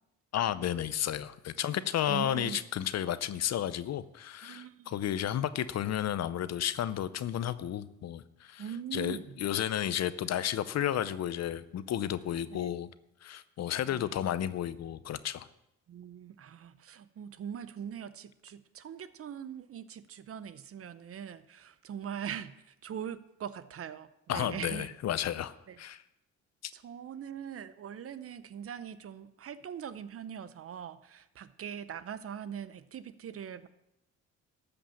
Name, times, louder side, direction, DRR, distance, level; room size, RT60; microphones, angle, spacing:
voice 1, 0.3-8.6 8.9-12.9 13.2-15.5 24.3-26.0, left 11 dB, 60° left, 15 dB, 0.7 m, -32 dB
voice 2, 2.1-2.6 4.4-4.9 5.2-5.3 8.6-9.4 12.5-12.7 13.9-14.2 15.9-24.9 25.7-25.8 26.7-33.7, right 8 dB, 50° right, 14 dB, 0.7 m, -42 dB
13.0 x 5.4 x 7.1 m, 0.85 s
cardioid pair, 90°, 30 cm